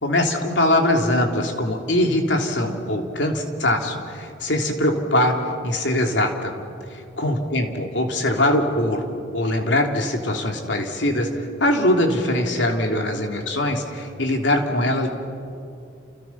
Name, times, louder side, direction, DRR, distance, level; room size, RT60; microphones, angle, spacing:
voice 1, 0.0-5.3 5.6-6.5 6.9-9.0 9.3-11.3 11.6-15.1, left 1 dB, 75° left, 3 dB, 3.3 m, -22 dB
30.0 x 29.5 x 6.0 m, 2.5 s
head